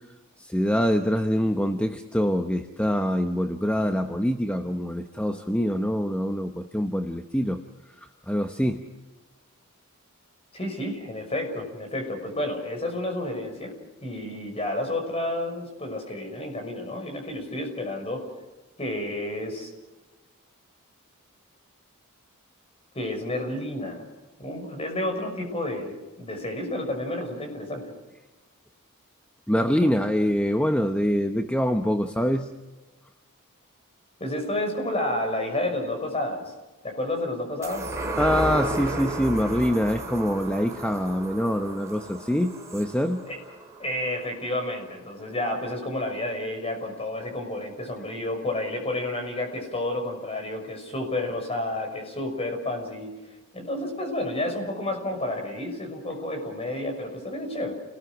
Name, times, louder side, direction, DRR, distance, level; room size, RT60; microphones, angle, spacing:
voice 1, 0.4-7.6 8.3-8.8 29.5-32.5 38.2-43.2, equal, 5° left, 6 dB, 1.0 m, -25 dB
voice 2, 10.5-13.7 14.0-18.3 18.8-19.7 22.9-24.1 24.4-27.9 34.2-36.4 36.8-37.9 43.3-43.4 43.8-53.2 53.5-57.7, left 1 dB, 30° left, 4 dB, 6.1 m, -30 dB
sound 1, 37.6-44.4 44.8-44.9, right 2 dB, 15° right, 3.5 m, -33 dB
29.5 x 19.5 x 6.2 m, 1.1 s
head